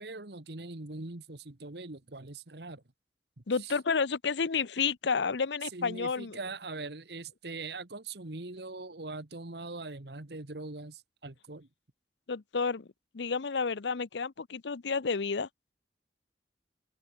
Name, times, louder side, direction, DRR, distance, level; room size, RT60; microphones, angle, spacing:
voice 1, 0.0-2.8 3.4-3.7 5.7-11.7, right 3 dB, 65° right, 1.5 m, -42 dB
voice 2, 3.5-6.4 12.3-12.9 13.1-15.5, left 5 dB, 80° left, 0.7 m, -30 dB
open air
head